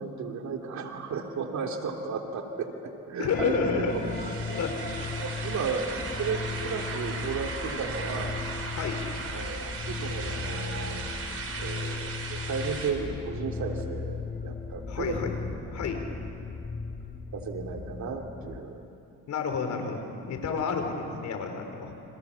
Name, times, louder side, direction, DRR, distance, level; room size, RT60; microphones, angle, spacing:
voice 1, 0.0-4.6 5.2-8.4 9.3-11.0 11.6-15.1 17.3-18.8, right 5 dB, 65° right, 3 dB, 3.3 m, -34 dB
voice 2, 3.2-3.9 4.5-4.8 8.7-9.0 14.9-15.3 15.7-16.0 19.3-22.0, left 5 dB, 70° left, 5 dB, 4.6 m, -30 dB
sound 1, 3.3-18.6, left 4 dB, 25° left, 1.6 m, -36 dB
sound 2, 3.9-12.9, right 4 dB, 50° right, 4.4 m, -37 dB
30.0 x 27.0 x 7.2 m, 2.7 s
cardioid pair, 90°, 30 cm